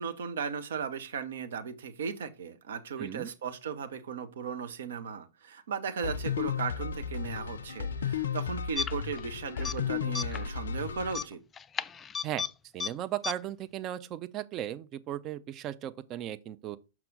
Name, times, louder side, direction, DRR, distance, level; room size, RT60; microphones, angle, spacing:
voice 1, 0.0-11.4, right 6 dB, 65° right, 0.9 m, -36 dB
voice 2, 3.0-3.3 12.2-12.4 12.7-16.8, right 12 dB, 35° right, 0.6 m, -36 dB
sound 1, 6.0-11.2, left 7 dB, 70° left, 0.5 m, -34 dB
sound 2, 8.8-9.2 9.5-9.8 10.1-10.5 11.1-12.5 12.8-12.9 13.2-13.3, left 6 dB, 20° left, 0.3 m, -34 dB
6.0 x 5.9 x 3.9 m
figure-of-eight pair, 100°, 0 cm